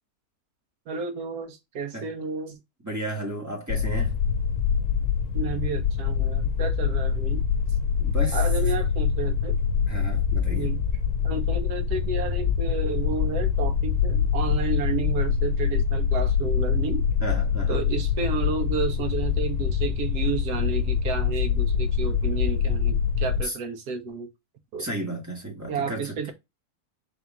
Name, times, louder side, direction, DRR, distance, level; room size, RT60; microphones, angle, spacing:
voice 1, 0.9-2.6 5.3-7.4 8.3-9.6 10.5-10.8 11.2-17.0 17.7-24.3 24.7-24.9 25.7-26.3, right 5 dB, 85° right, 1.4 m, -31 dB
voice 2, 2.8-4.2 8.0-8.7 9.9-10.7 17.2-17.8 23.4-23.5 24.8-26.3, right 1 dB, 10° right, 1.3 m, -33 dB
sound 1, 3.7-23.4, left 7 dB, 80° left, 1.1 m, -25 dB
4.1 x 3.0 x 3.5 m
omnidirectional pair, 1.6 m